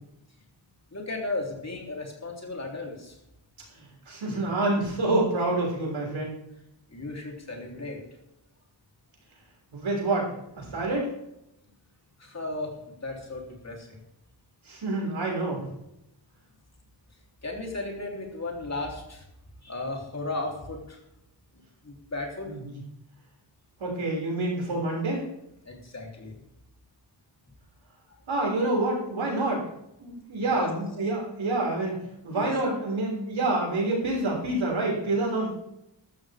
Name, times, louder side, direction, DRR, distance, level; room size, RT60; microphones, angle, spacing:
voice 1, 0.9-3.1 6.9-8.0 12.2-14.0 17.4-19.2 19.6-21.0 21.8-22.5 25.7-26.3 30.5-30.7 32.3-32.8, left 2 dB, 35° left, 1 dB, 3.7 m, -35 dB
voice 2, 3.7-6.4 9.7-11.1 14.6-15.6 22.5-22.8 23.8-25.2 28.3-29.6 30.0-31.9 32.2-35.5, right 2 dB, 85° right, -2 dB, 6.2 m, -27 dB
14.0 x 13.0 x 3.7 m, 0.81 s
wide cardioid pair, 135°, 45 cm